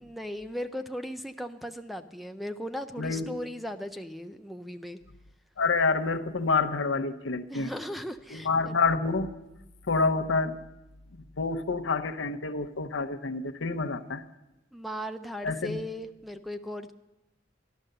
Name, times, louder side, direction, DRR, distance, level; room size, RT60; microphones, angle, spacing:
voice 1, 0.0-5.0 7.5-8.8 14.7-16.9, equal, ahead, 9 dB, 0.4 m, -37 dB
voice 2, 3.0-3.3 5.6-7.7 8.3-9.3 9.9-10.6 11.4-14.2 15.4-15.8, left 4 dB, 85° left, 8 dB, 0.8 m, -28 dB
13.5 x 11.5 x 6.6 m, 0.97 s
head